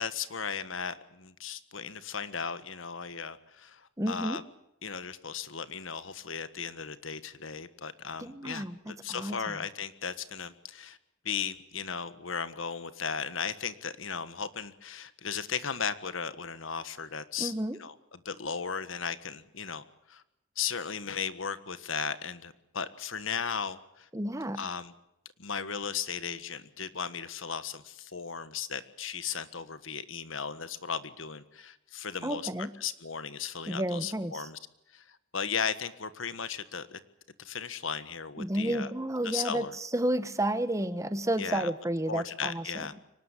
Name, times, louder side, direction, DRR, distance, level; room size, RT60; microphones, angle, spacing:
voice 1, 0.0-4.4 4.8-11.0 11.2-17.5 17.8-20.2 20.6-24.1 24.6-24.9 25.4-34.6 34.9-37.0 37.4-38.9 39.2-39.7 41.4-41.7 42.1-42.9, left 6 dB, 75° left, 13 dB, 1.5 m, -36 dB
voice 2, 4.0-4.4 8.2-9.6 17.4-17.8 24.1-24.6 32.2-32.7 33.7-34.5 38.4-43.0, right 1 dB, 15° right, 12 dB, 1.2 m, -31 dB
24.5 x 19.0 x 8.3 m, 0.85 s
head